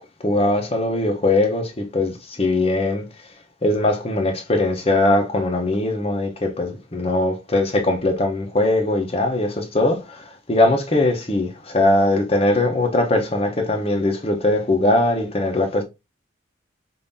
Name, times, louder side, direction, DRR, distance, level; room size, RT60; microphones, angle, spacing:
voice 1, 0.2-3.1 3.6-15.8, left 2 dB, 30° left, 0.9 m, -20 dB
5.4 x 2.7 x 2.7 m
head